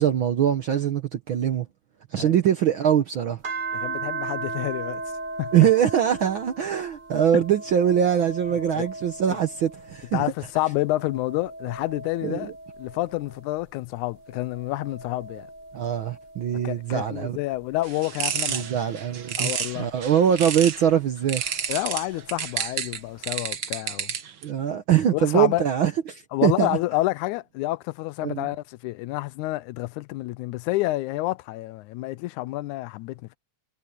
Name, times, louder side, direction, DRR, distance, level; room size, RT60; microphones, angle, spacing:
voice 1, 0.0-1.7 2.1-3.4 5.5-10.2 12.2-12.5 15.7-17.4 18.5-21.4 24.4-26.8 28.2-28.5, right 9 dB, 65° right, 1.2 m, -23 dB
sound 1, 3.4-10.2 10.6-13.5 14.1-16.9 17.6-20.1 21.4-22.5, right 3 dB, 20° right, 1.5 m, -38 dB
voice 2, 3.7-5.0 5.4-5.5 8.7-8.9 9.3-9.4 10.1-12.5 12.8-15.5 16.6-18.7 19.4-19.9 21.7-24.1 25.1-25.7 26.3-33.4, left 18 dB, 85° left, 2.0 m, -29 dB
sound 2, 17.8-20.9 21.3-24.4, right 7 dB, 50° right, 1.4 m, -30 dB
omnidirectional pair, 3.4 m